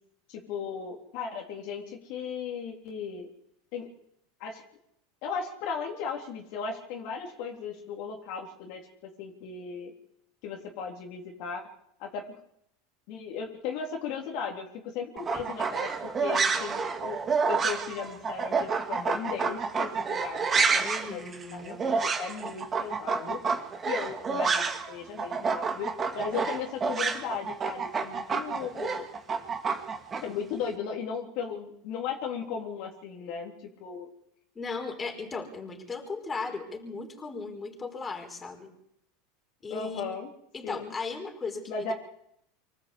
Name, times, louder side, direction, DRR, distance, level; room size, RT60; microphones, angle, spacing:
voice 1, 0.3-3.3 3.7-3.9 4.4-4.6 5.2-8.8 9.2-9.9 10.4-11.6 12.0-12.4 13.1-17.2 17.5-21.2 21.5-23.4 23.8-29.1 30.2-34.1 39.7-40.3 40.6-40.9 41.7-41.9, left 6 dB, 60° left, 0 dB, 3.8 m, -36 dB
sound 1, 15.2-24.9 25.2-30.2, right 5 dB, 25° right, 2.7 m, -29 dB
voice 2, 20.8-21.8 34.5-38.7 39.6-40.0 40.5-41.9, left 4 dB, 20° left, 2 dB, 4.9 m, -37 dB
25.0 x 13.5 x 8.6 m, 0.73 s
hypercardioid pair, 105°, 0 cm